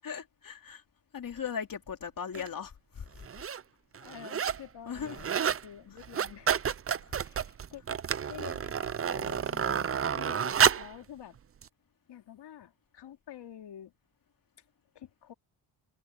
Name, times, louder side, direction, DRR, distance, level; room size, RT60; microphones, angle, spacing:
voice 1, 0.0-0.8 1.1-3.2 4.9-5.2 10.1-10.5, left 7 dB, 50° left, 3.0 m, -39 dB
sound 1, 2.3-2.5 3.2-3.6 3.9-4.7 5.0-5.6 6.0-11.0 11.6-11.7, right 8 dB, 30° right, 0.6 m, -30 dB
voice 2, 3.9-6.8 7.2-8.0 8.3-9.9 10.8-11.4 12.1-13.9 14.9-15.3, left 10 dB, 75° left, 2.8 m, -48 dB
cardioid pair, 80°, 43 cm